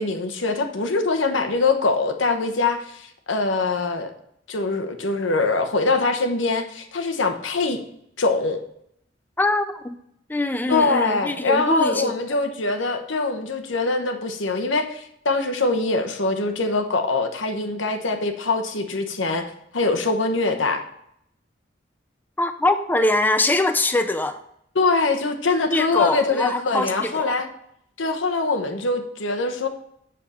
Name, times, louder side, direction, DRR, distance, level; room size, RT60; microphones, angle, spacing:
voice 1, 0.0-4.1 4.5-7.8 8.2-8.6 10.7-19.4 19.7-20.8 24.7-27.5 28.0-29.7, left 3 dB, 85° left, 6 dB, 1.0 m, -23 dB
voice 2, 9.4-10.0 10.3-12.1 22.4-24.4 25.7-27.3, left 2 dB, 10° left, 8 dB, 0.4 m, -23 dB
7.7 x 6.6 x 4.2 m, 0.73 s
head